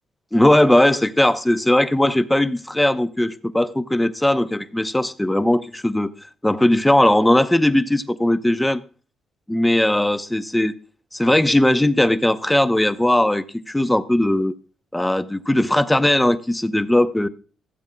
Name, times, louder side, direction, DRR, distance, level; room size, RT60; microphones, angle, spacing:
voice 1, 0.3-6.1 6.4-8.8 9.5-10.7 11.1-14.5 14.9-17.3, left 1 dB, 10° left, 0.7 m, -18 dB
16.0 x 8.0 x 2.2 m
cardioid pair, 90°, 0 cm